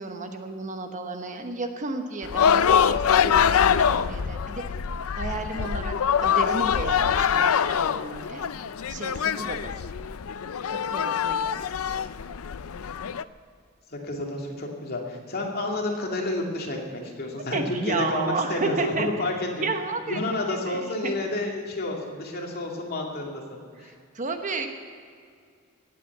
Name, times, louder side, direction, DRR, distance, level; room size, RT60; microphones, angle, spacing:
voice 1, 0.0-4.6 5.1-5.9 6.2-8.5 8.9-9.9 10.9-12.0 17.5-19.1 19.6-20.2 20.5-21.1 24.1-24.7, right 3 dB, 35° right, 6 dB, 1.1 m, -32 dB
sound 1, 2.2-13.2, left 7 dB, 80° left, 0.5 m, -24 dB
voice 2, 13.9-19.7 20.1-23.4 23.8-23.9, left 2 dB, 45° left, 0 dB, 2.5 m, -30 dB
18.0 x 8.4 x 7.9 m, 2.2 s
head